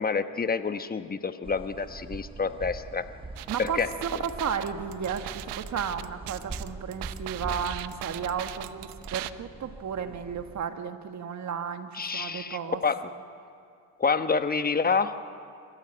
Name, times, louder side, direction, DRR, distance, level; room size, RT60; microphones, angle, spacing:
voice 1, 0.0-3.0 3.6-3.9 11.9-13.1 14.0-15.1, left 5 dB, 20° left, 10 dB, 1.2 m, -28 dB
sound 1, 1.4-10.7, right 2 dB, 10° right, 1.1 m, -43 dB
sound 2, 3.4-9.3, right 17 dB, 70° right, 0.9 m, -39 dB
voice 2, 3.5-12.8, right 7 dB, 40° right, 7 dB, 1.7 m, -33 dB
27.0 x 14.5 x 8.9 m, 2.4 s
supercardioid pair, 90°, 43 cm